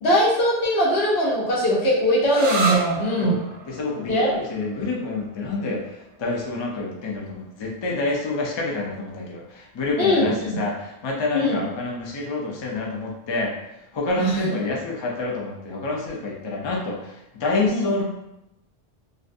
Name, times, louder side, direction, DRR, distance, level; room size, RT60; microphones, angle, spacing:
voice 1, 0.0-3.4 4.1-4.3 10.0-10.6 11.3-11.6 14.2-14.6 17.7-17.9, equal, 75° left, -5 dB, 1.0 m, -21 dB
sound 1, 2.3-9.7, right 3 dB, 80° right, 0.8 m, -34 dB
voice 2, 3.7-5.8 6.2-13.5 13.9-17.1 17.4-18.0, left 3 dB, 50° left, -2 dB, 0.3 m, -27 dB
2.4 x 2.1 x 2.5 m, 0.89 s
omnidirectional pair, 1.1 m